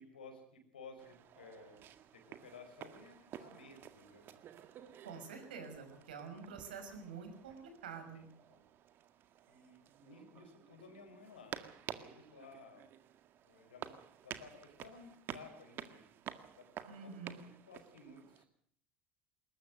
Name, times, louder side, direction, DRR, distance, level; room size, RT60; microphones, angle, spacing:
voice 1, 0.0-4.5 8.1-8.7 9.5-12.9 13.4-13.9 14.2-16.1 16.6-16.7 17.0-18.5, left 3 dB, 85° left, 6 dB, 5.6 m, -56 dB
sound 1, 1.0-18.4, right 10 dB, 50° right, 1.9 m, -52 dB
voice 2, 5.0-7.6 7.8-8.2 16.9-17.4, right 6 dB, 80° right, 6 dB, 5.8 m, -47 dB
21.0 x 20.5 x 6.6 m, 0.64 s
hypercardioid pair, 75°, 5 cm